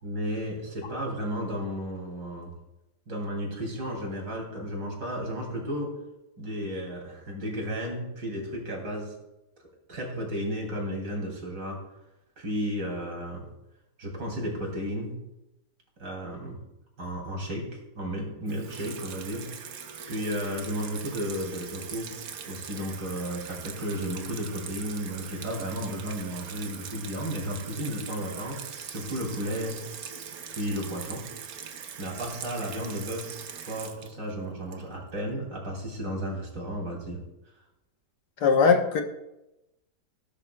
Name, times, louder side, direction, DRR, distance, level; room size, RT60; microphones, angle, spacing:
voice 1, 0.0-2.5 3.1-5.9 6.4-9.1 9.9-11.8 12.4-13.4 14.0-15.2 16.0-16.6 17.0-19.5 20.1-22.1 22.5-29.8 30.5-31.2 32.0-33.3 33.7-37.2, equal, 90° right, 0 dB, 3.6 m, -33 dB
Water tap faucet / Sink (filling or washing), 18.5-35.2, right 7 dB, 60° right, 1.3 m, -41 dB
voice 2, 38.4-39.0, left 5 dB, 70° left, 5 dB, 1.6 m, -20 dB
18.5 x 9.9 x 2.3 m, 0.92 s
omnidirectional pair, 1.8 m